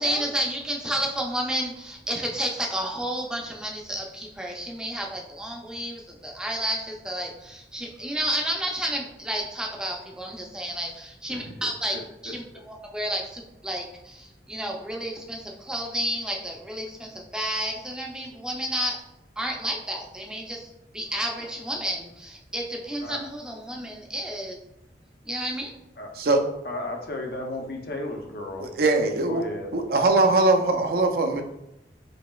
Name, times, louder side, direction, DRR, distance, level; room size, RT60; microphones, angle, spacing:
voice 1, 0.0-19.0 19.4-24.6 25.2-25.7, right 1 dB, 5° right, 0 dB, 0.5 m, -31 dB
voice 2, 26.6-28.6 29.2-29.7, left 2 dB, 60° left, 2 dB, 0.6 m, -34 dB
voice 3, 28.6-29.4 29.7-31.4, right 2 dB, 55° right, 4 dB, 0.5 m, -21 dB
5.0 x 2.9 x 2.3 m, 0.85 s
head